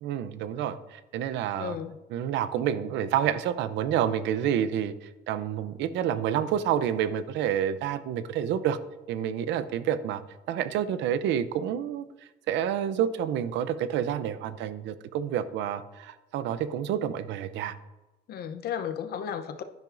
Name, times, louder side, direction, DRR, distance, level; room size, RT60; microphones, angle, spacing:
voice 1, 0.0-1.8 2.1-8.8 9.1-10.2 10.5-12.1 12.5-17.7, right 9 dB, 90° right, 0.6 m, -29 dB
voice 2, 1.6-2.0 18.3-19.6, left 8 dB, 60° left, 0.8 m, -34 dB
10.5 x 10.5 x 2.6 m
cardioid pair, 155°, 18 cm